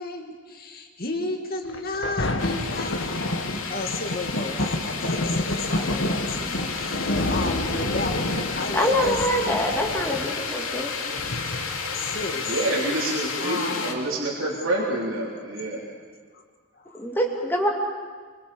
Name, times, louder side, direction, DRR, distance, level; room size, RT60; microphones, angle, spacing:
voice 1, 0.0-3.4 3.7-9.7 10.0-10.3 11.9-12.5 13.4-14.1 16.3-16.4 16.7-17.0, left 2 dB, 45° left, 4 dB, 2.3 m, -33 dB
Thunder, 1.7-12.7 13.3-13.4, left 1 dB, 65° left, 1.9 m, -29 dB
sound 1, 2.4-13.9, left 5 dB, 85° left, 2.8 m, -32 dB
voice 2, 8.7-10.9 17.0-17.7, equal, 10° left, 1 dB, 2.5 m, -24 dB
voice 3, 12.5-15.8, right 1 dB, 75° right, -3 dB, 3.7 m, -27 dB
26.0 x 24.0 x 7.0 m, 1.5 s
head